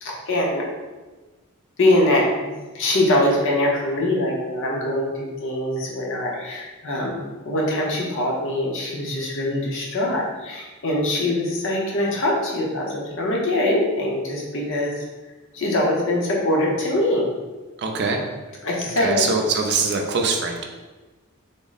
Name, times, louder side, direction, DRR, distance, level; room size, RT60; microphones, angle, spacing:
voice 1, 0.0-0.7 1.8-14.9 15.5-17.3 18.6-19.2, left 1 dB, 60° left, -2 dB, 0.7 m, -23 dB
voice 2, 17.8-18.2 19.0-20.7, right 4 dB, 50° right, 2 dB, 0.4 m, -23 dB
3.6 x 2.0 x 3.9 m, 1.2 s
head